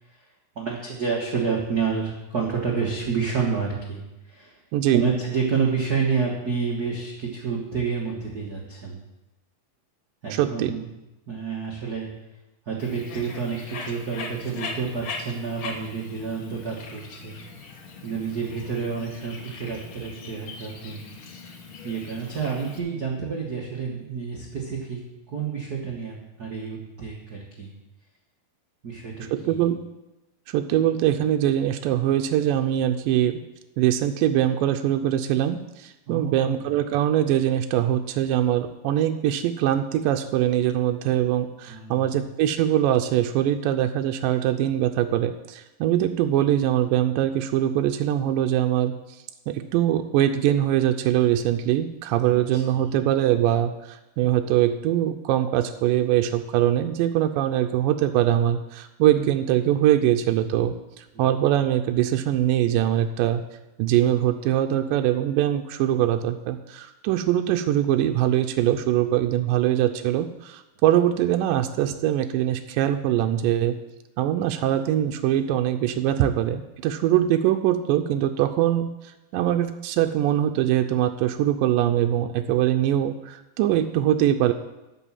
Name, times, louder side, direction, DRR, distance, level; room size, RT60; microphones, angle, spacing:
voice 1, 0.5-4.0 4.3-4.6 4.9-9.0 10.2-10.9 11.3-12.1 12.7-17.4 18.0-21.0 21.8-27.7 28.8-29.6 36.1-36.7 41.7-42.1 52.5-52.8 61.1-61.2, right 5 dB, 65° right, -3 dB, 0.9 m, -29 dB
voice 2, 4.7-5.0 10.3-10.7 29.3-29.8 30.5-33.4 33.8-48.9 49.5-63.4 63.8-73.8 74.2-78.9 79.3-84.5, right 12 dB, 80° right, 6 dB, 2.1 m, -22 dB
Bird, 12.8-22.8, left 4 dB, 70° left, 1.3 m, -40 dB
12.5 x 5.4 x 7.3 m, 0.99 s
omnidirectional pair, 4.2 m